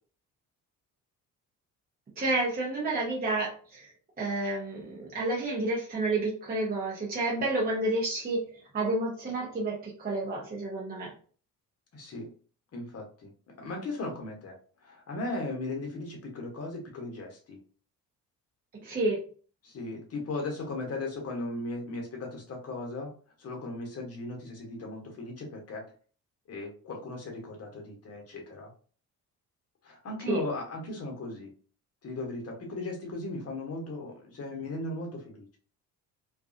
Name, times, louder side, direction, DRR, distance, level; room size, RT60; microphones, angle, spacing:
voice 1, 2.2-3.9 4.2-8.4 8.7-11.1 18.7-19.2 30.3-30.4, right 2 dB, 20° right, -4 dB, 0.8 m, -30 dB
voice 2, 11.9-12.3 12.7-13.3 13.6-14.6 14.8-17.6 19.6-23.1 23.4-25.8 26.5-28.7 29.8-31.5 32.0-35.5, left 2 dB, 30° left, 1 dB, 1.0 m, -37 dB
2.4 x 2.3 x 2.5 m, 0.41 s
figure-of-eight pair, 50°, 46 cm